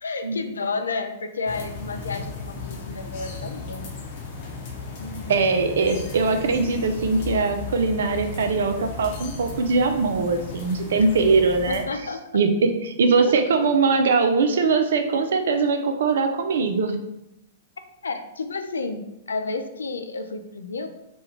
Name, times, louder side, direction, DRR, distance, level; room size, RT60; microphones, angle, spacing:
voice 1, 0.0-3.9 5.0-5.3 11.7-12.3 13.2-13.3 18.0-20.9, left 3 dB, 80° left, 7 dB, 0.3 m, -31 dB
sound 1, 1.5-11.8, left 3 dB, 50° left, 0.8 m, -36 dB
voice 2, 5.3-11.8 12.3-17.0, right 4 dB, 70° right, 6 dB, 0.4 m, -21 dB
3.0 x 2.3 x 3.3 m, 0.86 s
figure-of-eight pair, 105°, 0 cm